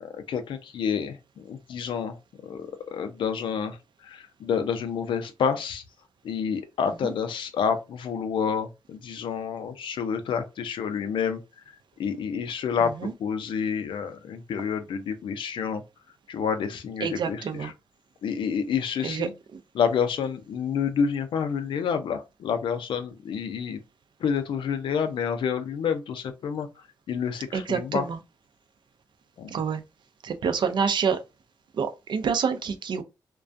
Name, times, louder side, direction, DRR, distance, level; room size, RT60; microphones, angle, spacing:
voice 1, 0.0-2.2 2.4-5.8 6.2-11.4 11.7-12.9 13.2-15.8 16.3-17.7 18.2-19.3 19.7-23.8 24.2-26.7 27.1-28.1 29.4-29.6, left 7 dB, 80° left, 0.4 m, -29 dB
voice 2, 17.0-17.7 19.0-19.3 27.5-28.2 29.5-29.8 30.2-31.2 31.8-33.0, right 6 dB, 65° right, 0.5 m, -27 dB
2.3 x 2.2 x 2.5 m
cardioid pair, 65°, 8 cm